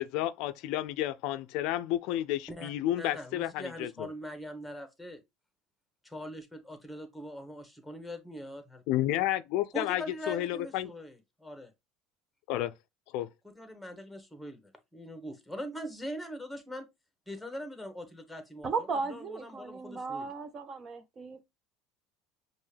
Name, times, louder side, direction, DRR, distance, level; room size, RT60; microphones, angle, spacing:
voice 1, 0.0-4.1 8.9-10.9 12.5-12.7 13.1-13.3, left 14 dB, 70° left, 0.4 m, -31 dB
voice 2, 3.0-5.2 6.0-8.8 9.7-11.7 13.6-16.9 17.3-18.7 19.1-20.3, equal, ahead, 1.3 m, -42 dB
voice 3, 18.6-21.4, right 4 dB, 35° right, 0.9 m, -36 dB
5.3 x 2.5 x 3.3 m
supercardioid pair, 90°, 0 cm